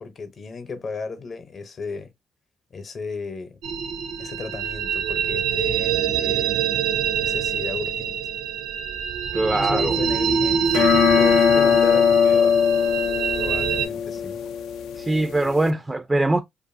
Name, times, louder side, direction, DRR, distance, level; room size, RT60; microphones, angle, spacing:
voice 1, 0.0-2.1 2.7-3.6 4.2-6.5 7.2-8.1 9.5-10.9 11.2-12.6 13.4-14.4, left 4 dB, 45° left, 0.7 m, -34 dB
sound 1, 3.6-13.9, right 7 dB, 80° right, 0.5 m, -25 dB
voice 2, 9.3-10.0 15.0-16.4, right 2 dB, 20° right, 0.3 m, -22 dB
sound 2, 10.7-15.7, left 7 dB, 85° left, 0.3 m, -20 dB
2.6 x 2.5 x 2.5 m
cardioid pair, 90°, 0 cm